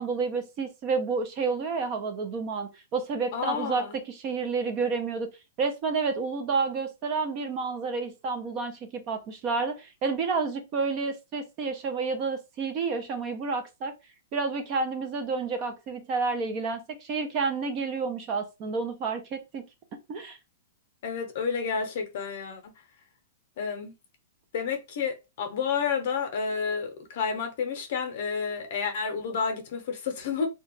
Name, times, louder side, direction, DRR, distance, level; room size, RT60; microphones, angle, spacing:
voice 1, 0.0-5.3 5.6-13.9 14.3-19.6 20.1-20.4, right 4 dB, 30° right, 0.4 m, -30 dB
voice 2, 3.3-3.9 21.0-22.7 23.6-23.9 24.5-30.5, left 6 dB, 50° left, 0.6 m, -30 dB
2.8 x 2.2 x 2.6 m
hypercardioid pair, 165°, 0 cm